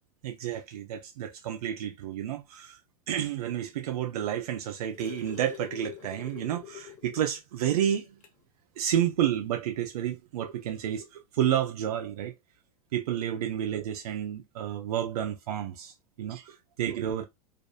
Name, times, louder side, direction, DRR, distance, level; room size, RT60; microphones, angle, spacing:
voice 1, 0.2-2.8 3.1-8.0 8.8-12.3 12.9-15.9 16.2-17.3, right 10 dB, 90° right, 0.4 m, -30 dB
sound 1, 4.4-7.3 7.7-7.8 8.2-8.4 9.5-9.6, left 10 dB, 45° left, 0.9 m, -45 dB
2.5 x 2.4 x 2.3 m
supercardioid pair, 120°, 19 cm